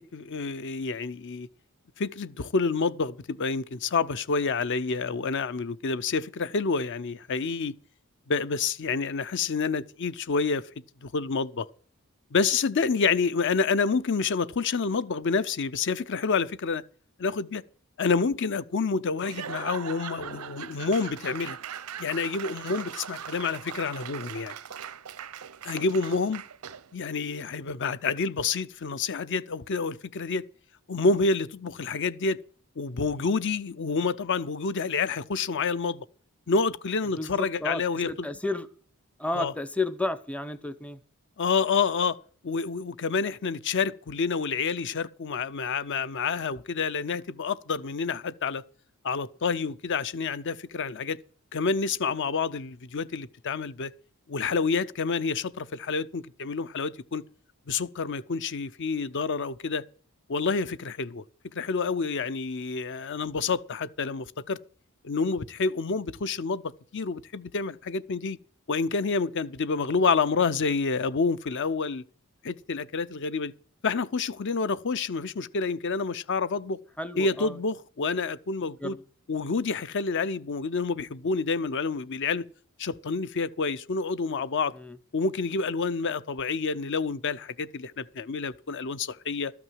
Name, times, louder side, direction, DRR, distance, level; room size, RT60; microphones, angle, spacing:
voice 1, 0.0-1.5 2.0-7.7 8.3-10.6 11.0-11.7 12.3-16.8 17.2-17.6 18.0-21.6 22.0-24.5 25.6-26.4 26.9-30.4 30.9-32.4 32.8-36.1 36.5-38.3 39.3-39.5 41.4-42.2 42.4-48.6 49.0-51.2 51.5-53.9 54.3-57.2 57.7-59.8 60.3-61.2 61.5-64.6 65.0-68.4 68.7-72.0 72.4-73.5 73.8-76.8 77.2-79.0 79.3-82.4 82.8-84.7 85.1-89.5, left 4 dB, 55° left, 0.6 m, -28 dB
Laughter / Applause / Crowd, 19.2-27.0, right 8 dB, 90° right, 0.7 m, -40 dB
voice 2, 37.2-38.7 39.2-41.0 77.0-77.6 78.8-79.0 84.8-85.0, left 2 dB, 5° left, 0.6 m, -32 dB
13.0 x 6.0 x 9.3 m
head